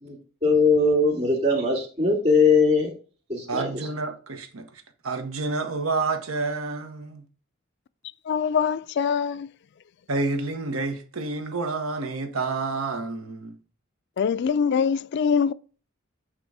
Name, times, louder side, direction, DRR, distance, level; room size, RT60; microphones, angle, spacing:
voice 1, 0.0-2.9 3.3-3.7, left 3 dB, 30° right, 2.2 m, -21 dB
voice 2, 3.5-7.2 10.1-13.6, right 3 dB, 85° right, 1.0 m, -29 dB
voice 3, 8.3-9.5 14.2-15.5, left 6 dB, 55° left, 0.3 m, -23 dB
8.7 x 3.1 x 4.7 m
head